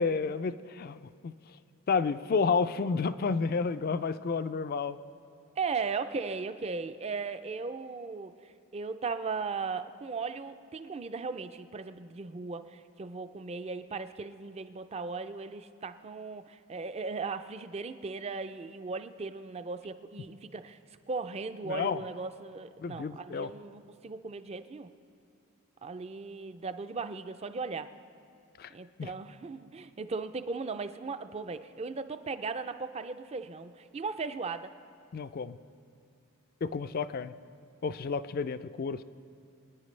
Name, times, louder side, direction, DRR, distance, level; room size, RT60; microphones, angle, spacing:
voice 1, 0.0-1.3 1.9-5.0 21.7-22.0 22.8-23.5 28.6-28.7 29.0-29.1 35.1-35.6 36.6-37.3 37.8-39.0, left 5 dB, 40° left, 14 dB, 0.3 m, -30 dB
voice 2, 5.6-20.8 21.1-24.9 25.8-27.9 28.7-34.7, right 4 dB, 30° right, 11 dB, 0.4 m, -37 dB
23.5 x 9.9 x 3.2 m, 2.6 s
head